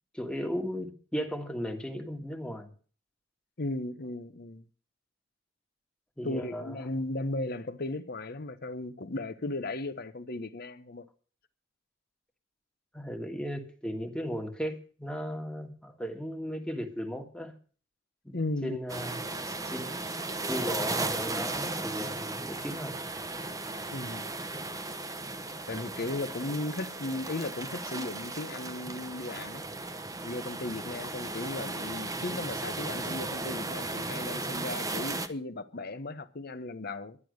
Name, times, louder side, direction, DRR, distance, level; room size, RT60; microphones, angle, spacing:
voice 1, 0.1-2.7 6.2-6.8 12.9-17.5 18.3-18.4 18.6-20.0 20.5-23.0 23.4-23.5, equal, 5° left, 1.6 m, -36 dB
voice 2, 3.6-4.6 6.2-11.1 18.3-18.8 23.9-24.3 25.7-29.6 30.2-37.2, left 2 dB, 50° left, 1.0 m, -36 dB
sound 1, 18.9-35.3, right 2 dB, 20° right, 0.9 m, -36 dB
11.0 x 10.5 x 6.4 m
head